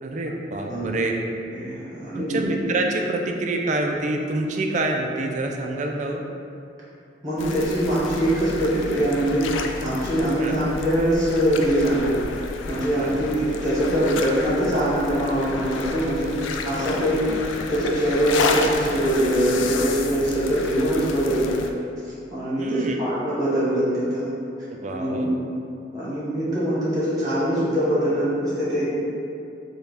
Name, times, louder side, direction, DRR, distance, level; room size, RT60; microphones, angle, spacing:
voice 1, 0.0-1.2 2.1-6.2 10.4-10.6 13.0-13.1 22.6-23.0 24.7-25.4, right 2 dB, 40° right, 2 dB, 0.3 m, -26 dB
voice 2, 1.5-2.4 7.2-9.5 9.8-12.1 12.7-17.3 17.7-21.7 22.0-24.3 24.9-25.4 25.9-28.8, equal, 20° right, -9 dB, 1.2 m, -23 dB
sound 1, 7.4-21.7, left 3 dB, 80° left, 0.4 m, -31 dB
6.7 x 2.3 x 3.3 m, 2.5 s
head